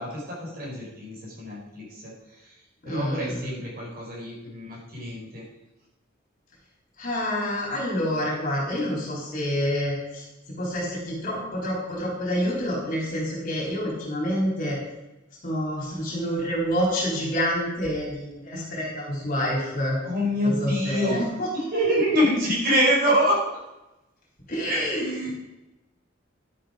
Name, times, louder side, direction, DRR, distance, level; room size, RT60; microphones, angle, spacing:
voice 1, 0.0-2.5 2.8-5.4 20.0-21.2 21.5-23.4 24.6-25.3, equal, 45° right, -5 dB, 4.8 m, -26 dB
voice 2, 2.9-3.5 7.0-10.2 10.5-14.8 15.4-20.0 20.4-21.5 24.5-25.0, equal, 45° left, -3 dB, 4.0 m, -27 dB
11.0 x 8.6 x 5.2 m, 0.97 s
head